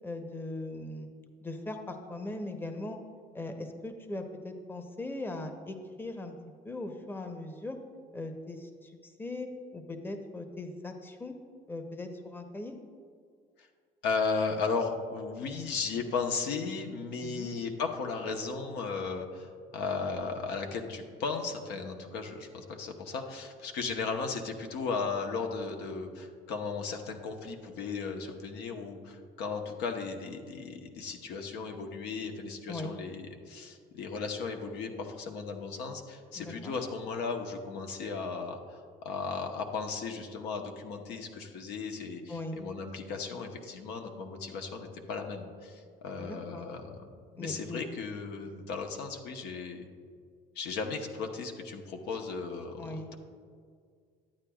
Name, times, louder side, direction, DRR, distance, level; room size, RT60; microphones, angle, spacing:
voice 1, 0.0-1.1 1.4-3.0 3.3-6.3 6.6-7.8 8.1-11.3 11.7-12.7 17.2-17.5 32.7-32.9 36.4-36.8 42.3-42.6 46.2-46.7 47.4-47.8 52.8-53.1, left 2 dB, 10° left, 6 dB, 0.7 m, -39 dB
voice 2, 14.0-47.1 47.3-49.9 50.5-53.1, left 4 dB, 85° left, 3 dB, 0.9 m, -36 dB
11.5 x 8.7 x 2.3 m, 2.1 s
cardioid pair, 110°, 17 cm